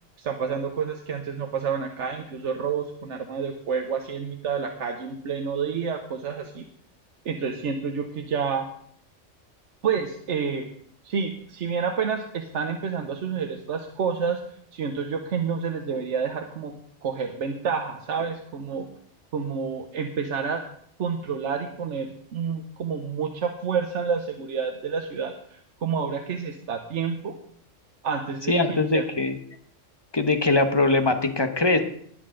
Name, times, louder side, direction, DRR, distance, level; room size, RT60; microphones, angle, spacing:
voice 1, 0.2-6.6 7.2-8.7 9.8-10.7 11.0-16.7 17.0-18.9 19.3-20.6 21.0-27.3 28.0-29.0, right 6 dB, 70° right, 5 dB, 1.2 m, -29 dB
voice 2, 28.5-29.3 30.1-31.8, left 2 dB, 20° left, 7 dB, 1.0 m, -21 dB
19.5 x 7.7 x 3.8 m, 0.65 s
omnidirectional pair, 1.3 m